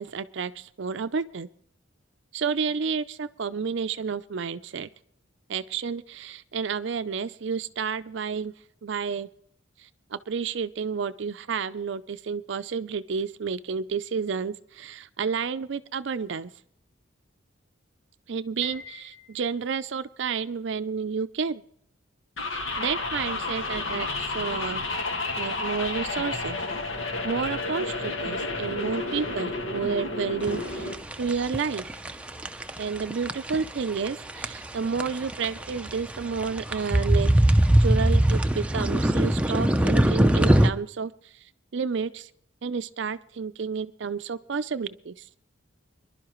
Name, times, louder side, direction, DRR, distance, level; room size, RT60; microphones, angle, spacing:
voice 1, 0.0-1.5 2.3-4.9 5.5-8.5 8.8-9.3 9.8-16.5 18.3-21.6 22.5-24.8 25.4-26.6 27.2-30.9 31.2-31.9 32.8-37.3 37.8-41.1 41.7-42.3 42.6-45.2, right 5 dB, 60° right, 13 dB, 0.5 m, -30 dB
Piano, 18.6-19.9, left 6 dB, 50° left, 4.0 m, -45 dB
sound 1, 22.4-30.9, left 2 dB, 80° left, 1.8 m, -31 dB
sound 2, 30.4-40.7, right 1 dB, 5° right, 0.5 m, -22 dB
25.0 x 11.5 x 3.1 m, 0.67 s
head